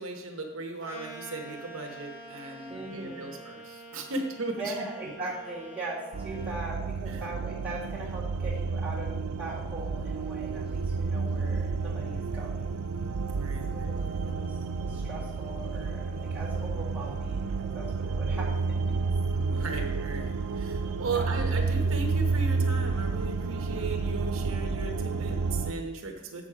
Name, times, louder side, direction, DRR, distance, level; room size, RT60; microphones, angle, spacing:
voice 1, 0.0-4.8 7.1-7.2 13.3-14.3 19.3-26.5, right 3 dB, 65° right, 3 dB, 0.9 m, -37 dB
sound 1, 0.8-6.6, right 1 dB, 60° left, 2.9 m, -46 dB
voice 2, 2.7-3.3 4.6-12.8 13.7-19.0 19.5-19.7 21.1-21.3, right 2 dB, 5° right, -8 dB, 2.2 m, -40 dB
sound 2, 6.1-25.7, right 4 dB, 90° right, 0.5 m, -30 dB
7.1 x 6.2 x 4.8 m, 1.0 s
head